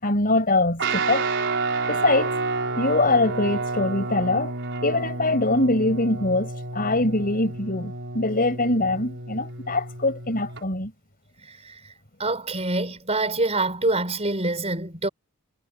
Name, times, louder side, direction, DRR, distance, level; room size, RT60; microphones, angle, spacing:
voice 1, 0.0-1.2 1.9-2.4 2.8-4.5 4.8-10.9, left 2 dB, 40° left, 5.6 m, -23 dB
Guitar, 0.8-10.6, right 3 dB, 55° right, 4.6 m, -30 dB
voice 2, 12.2-15.1, right 2 dB, 30° right, 5.3 m, -25 dB
head